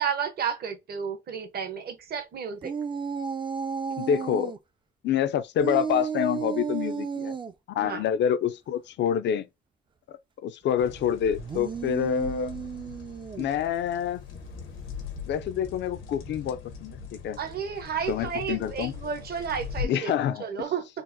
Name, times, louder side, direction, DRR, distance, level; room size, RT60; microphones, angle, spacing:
voice 1, 0.0-2.7 7.8-8.0 17.4-21.0, right 7 dB, 50° right, 0.8 m, -32 dB
sound 1, 2.6-4.6 5.6-7.5 11.3-13.6, right 6 dB, 25° right, 0.3 m, -33 dB
voice 2, 4.0-4.5 5.0-7.4 7.7-9.4 10.1-12.5 13.4-14.2 15.3-17.4 18.1-18.9 19.8-20.4, left 9 dB, 65° left, 0.4 m, -27 dB
sound 2, 10.8-19.9, left 6 dB, 90° left, 0.9 m, -40 dB
3.9 x 2.0 x 2.6 m
cardioid pair, 90°, 20 cm